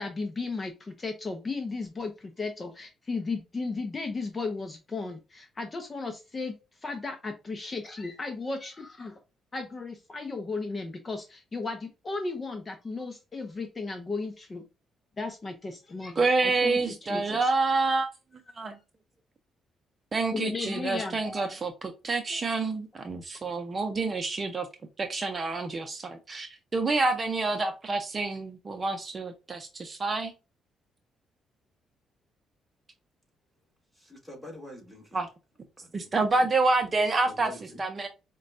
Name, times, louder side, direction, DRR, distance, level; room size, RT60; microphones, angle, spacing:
voice 1, 0.0-6.5 6.8-9.2 9.5-14.6 15.2-16.8 17.1-17.5 20.3-21.5 22.3-22.4, left 3 dB, 30° left, 0.6 m, -35 dB
voice 2, 16.2-18.1 18.6-18.8 20.1-24.7 25.0-30.3 35.1-35.3 35.9-37.5 37.8-38.1, right 3 dB, 35° right, 0.6 m, -28 dB
voice 3, 21.2-21.6 33.9-35.2 35.8-36.1 36.4-36.5 37.3-37.8, left 1 dB, 5° left, 1.7 m, -46 dB
5.0 x 2.2 x 2.5 m
cardioid pair, 90°, 0 cm